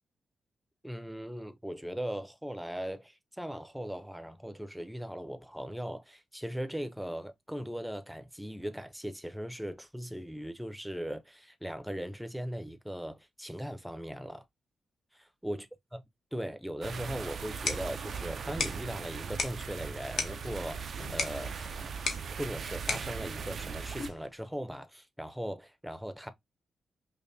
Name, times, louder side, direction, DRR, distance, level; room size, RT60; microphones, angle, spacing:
voice 1, 0.8-14.4 15.1-15.7 16.3-21.6 22.4-26.3, equal, 5° right, 0.5 m, -39 dB
sound 1, 16.8-24.1, right 6 dB, 65° right, 0.4 m, -39 dB
sound 2, 17.3-24.3, left 4 dB, 70° left, 0.8 m, -39 dB
5.3 x 2.1 x 2.6 m
cardioid pair, 85°, 0 cm